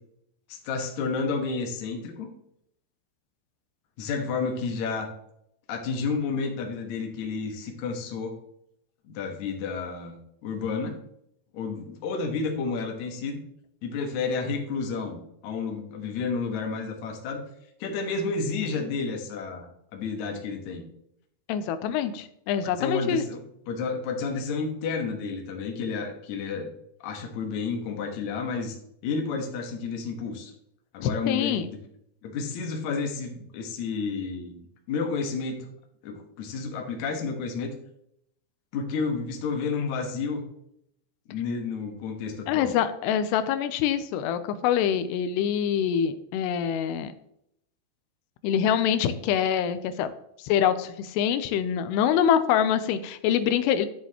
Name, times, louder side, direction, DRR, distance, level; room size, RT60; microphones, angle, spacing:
voice 1, 0.5-2.3 4.0-5.1 5.7-8.4 9.0-11.0 11.5-13.4 13.8-17.4 17.8-20.8 22.6-23.4 23.7-26.7 27.0-28.8 29.0-30.5 30.9-31.8 32.2-34.6 34.9-35.7 36.0-37.7 38.7-40.4 41.3-42.8, left 4 dB, 60° left, 2 dB, 2.2 m, -31 dB
voice 2, 21.5-23.2 31.0-31.7 42.5-47.1 48.4-50.1 50.4-53.9, left 9 dB, 90° left, 11 dB, 2.7 m, -25 dB
11.5 x 7.0 x 3.0 m, 0.74 s
omnidirectional pair, 4.7 m